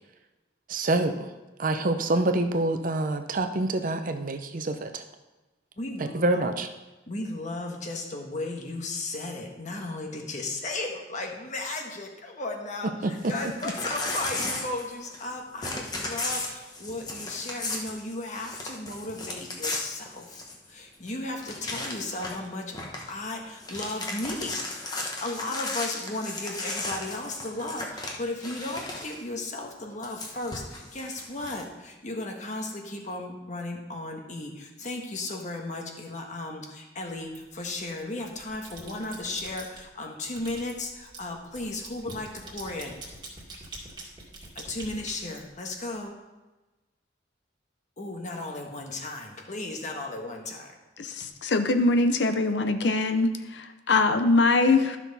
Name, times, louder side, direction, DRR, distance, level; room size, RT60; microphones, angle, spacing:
voice 1, 0.7-1.3 1.6-5.0 6.0-6.7 13.0-13.3, right 2 dB, 45° right, 7 dB, 0.7 m, -26 dB
voice 2, 5.8-6.4 7.1-20.4 20.7-22.7 23.1-24.6 25.2-42.9 44.5-46.1 48.0-50.7, left 2 dB, 40° left, 2 dB, 1.3 m, -35 dB
Crumpling crinkling / Tearing, 13.1-15.3 15.6-20.7 21.1-21.2 21.4-22.5 22.7-23.1 23.5-29.2 30.0-31.6, left 2 dB, 20° left, 1.1 m, -35 dB
sound 1, 37.3-37.9 38.3-39.8 40.2-46.0, right 2 dB, 25° right, 2.0 m, -45 dB
voice 3, 51.0-55.0, left 3 dB, 70° left, 8 dB, 0.6 m, -23 dB
12.5 x 6.0 x 4.1 m, 1.1 s
head